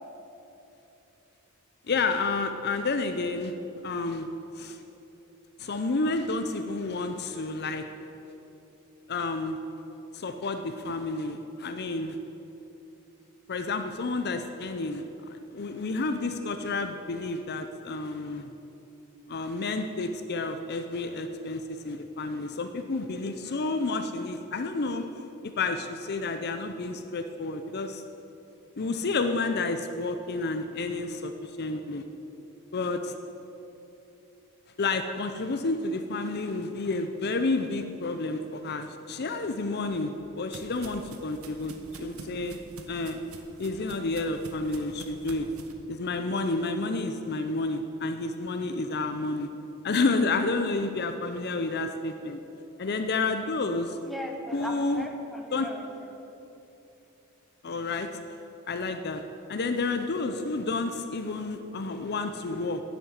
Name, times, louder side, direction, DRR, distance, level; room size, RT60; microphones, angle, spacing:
voice 1, 1.9-3.5 3.8-4.3 4.6-4.8 5.6-7.9 9.1-9.6 10.1-12.2 13.5-18.5 19.3-25.1 25.4-28.0 28.8-32.0 32.7-33.2 34.8-42.6 42.9-43.2 43.6-45.5 45.9-49.5 49.8-52.4 52.8-54.0 54.5-55.0 55.5-55.7 57.6-58.2 58.7-59.2 59.5-62.8, left 3 dB, 45° left, 7 dB, 0.6 m, -30 dB
sound 1, 39.6-45.7, right 3 dB, 75° right, 1.2 m, -47 dB
voice 2, 54.0-56.1, left 1 dB, ahead, 1 dB, 1.2 m, -38 dB
11.0 x 7.9 x 9.5 m, 3.0 s
head